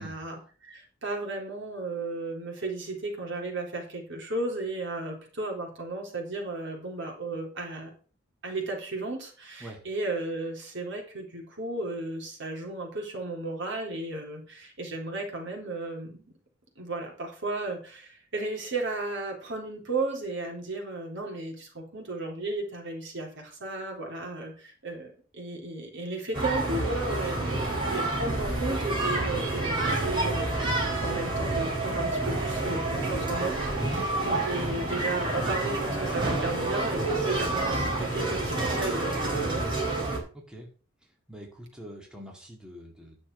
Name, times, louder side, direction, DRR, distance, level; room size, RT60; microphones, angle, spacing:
voice 1, 0.0-7.9 8.4-16.2 16.8-30.6 31.0-33.6 33.9-40.1, right 2 dB, 60° right, 1 dB, 3.9 m, -34 dB
sound 1, 26.3-40.2, right 2 dB, 25° right, 4.2 m, -28 dB
voice 2, 40.3-40.7 41.3-43.2, equal, 5° right, 0 dB, 2.2 m, -43 dB
10.5 x 6.4 x 6.2 m, 0.37 s
head